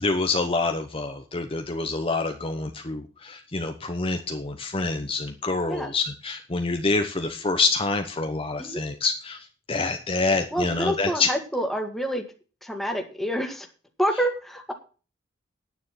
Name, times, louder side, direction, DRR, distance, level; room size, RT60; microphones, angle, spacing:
voice 1, 0.0-11.3, left 3 dB, 30° left, 6 dB, 1.0 m, -27 dB
voice 2, 10.5-12.2 12.6-13.7 14.0-14.7, equal, ahead, 4 dB, 1.9 m, -27 dB
9.7 x 9.6 x 5.9 m, 0.36 s
head